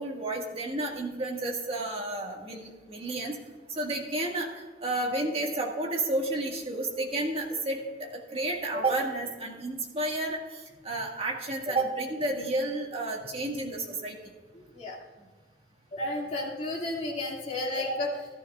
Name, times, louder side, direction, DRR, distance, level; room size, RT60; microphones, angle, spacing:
voice 1, 0.0-3.4 3.8-4.5 4.8-7.8 8.1-14.2, right 2 dB, 35° right, 0 dB, 1.7 m, -31 dB
voice 2, 15.9-18.3, left 1 dB, 40° left, -2 dB, 2.3 m, -32 dB
14.5 x 12.5 x 2.4 m, 1.3 s
head